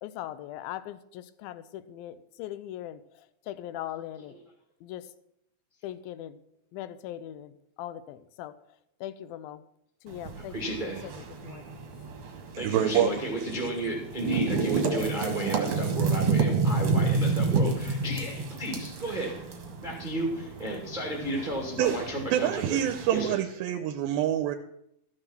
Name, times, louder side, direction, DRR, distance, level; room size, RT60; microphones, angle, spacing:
voice 1, 0.0-4.4 4.8-5.1 5.8-6.4 6.7-8.6 9.0-9.6 10.0-11.7, left 12 dB, 85° left, 14 dB, 2.5 m, -40 dB
sound 1, 10.1-23.3, right 4 dB, 50° right, 2.0 m, -30 dB
voice 2, 10.5-11.1 12.5-19.4 19.8-22.8 23.1-23.4, right 1 dB, 20° right, -2 dB, 1.3 m, -33 dB
voice 3, 12.5-13.1 21.8-21.9 22.3-24.6, right 11 dB, 90° right, 7 dB, 2.5 m, -26 dB
14.0 x 6.9 x 6.0 m, 0.77 s
omnidirectional pair, 4.2 m